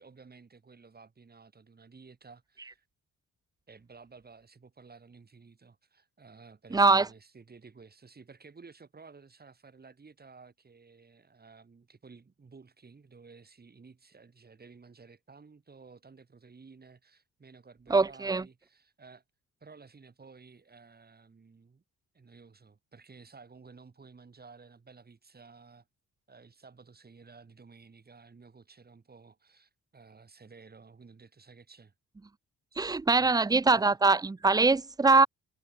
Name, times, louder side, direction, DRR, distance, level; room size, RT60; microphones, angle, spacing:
voice 1, 0.0-2.9 3.7-19.2 19.6-21.8 22.1-25.9 26.3-31.9 33.2-33.4 33.8-33.9, right 4 dB, 30° right, 8.0 m, -54 dB
voice 2, 6.7-7.1 17.9-18.4 32.8-35.3, right 3 dB, 15° right, 0.6 m, -23 dB
cardioid pair, 90°, 30 cm